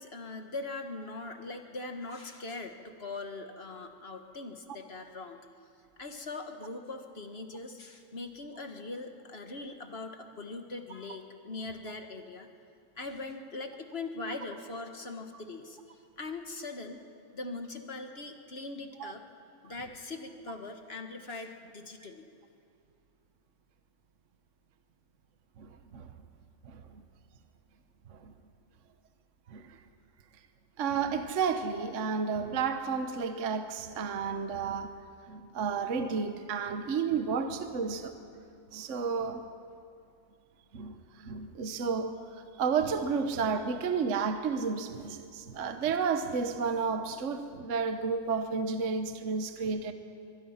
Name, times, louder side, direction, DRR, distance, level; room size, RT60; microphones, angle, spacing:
voice 1, 0.0-5.4 6.0-12.5 13.0-17.0 17.3-19.2 19.6-22.3, left 3 dB, 35° left, 1.4 m, -41 dB
voice 2, 25.6-26.1 26.6-27.0 28.1-28.3 29.5-29.8 30.8-35.0 35.3-38.3 38.7-39.5 40.7-42.2 42.6-49.9, right 5 dB, 45° right, 1.2 m, -32 dB
24.0 x 22.0 x 5.8 m
omnidirectional pair, 2.2 m